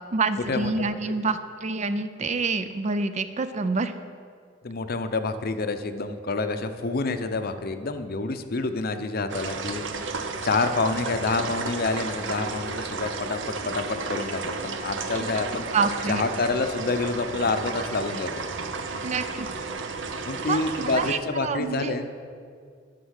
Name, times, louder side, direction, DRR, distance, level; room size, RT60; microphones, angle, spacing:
voice 1, 0.1-4.0 15.2-15.3 15.7-16.2 19.0-19.5 20.4-22.0, right 4 dB, 40° right, 11 dB, 0.4 m, -27 dB
voice 2, 4.6-10.1 10.4-15.6 16.1-18.3 20.3-22.1, left 3 dB, 55° left, 8 dB, 0.7 m, -28 dB
sound 1, 9.3-21.1, right 4 dB, 70° right, 0.7 m, -33 dB
11.5 x 6.1 x 6.4 m, 2.2 s
head